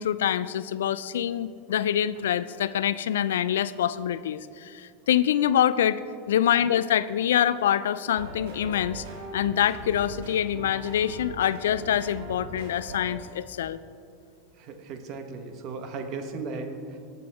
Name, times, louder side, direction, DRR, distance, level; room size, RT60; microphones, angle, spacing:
voice 1, 0.0-6.0 6.3-9.0 9.3-13.8, left 10 dB, 80° left, 16 dB, 0.3 m, -25 dB
sound 1, 8.0-13.2, right 2 dB, 75° right, 2.6 m, -40 dB
voice 2, 14.5-17.0, right 4 dB, 50° right, 6 dB, 1.2 m, -36 dB
18.5 x 7.1 x 3.5 m, 2.5 s
hypercardioid pair, 100°, 0 cm